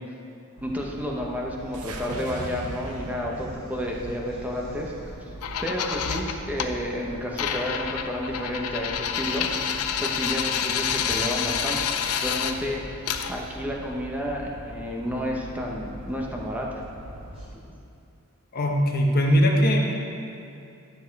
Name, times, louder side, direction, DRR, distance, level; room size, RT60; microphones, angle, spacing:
sound 1, 0.5-17.5, right 1 dB, 25° right, 2.0 m, -42 dB
voice 1, 0.6-4.9 5.6-16.8, equal, 5° right, -1 dB, 1.0 m, -31 dB
sound 2, 1.7-6.0, right 2 dB, 75° right, 0.9 m, -40 dB
sound 3, 5.4-6.7 7.4-12.5 13.1-13.3, left 7 dB, 80° left, 0.6 m, -28 dB
voice 2, 18.5-19.9, equal, 45° left, 0 dB, 1.2 m, -20 dB
12.0 x 6.8 x 4.7 m, 2.6 s
head